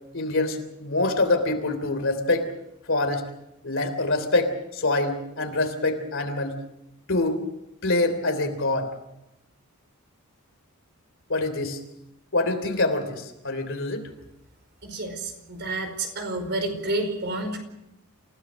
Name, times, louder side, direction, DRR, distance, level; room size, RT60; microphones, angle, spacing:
voice 1, 0.1-2.5 2.9-3.2 3.6-6.6 7.1-7.5 7.8-8.9 11.3-11.8 12.3-14.0, left 2 dB, 60° left, 7 dB, 3.3 m, -25 dB
voice 2, 14.8-17.6, right 2 dB, 50° right, 6 dB, 4.8 m, -29 dB
28.5 x 17.5 x 6.4 m, 0.86 s
head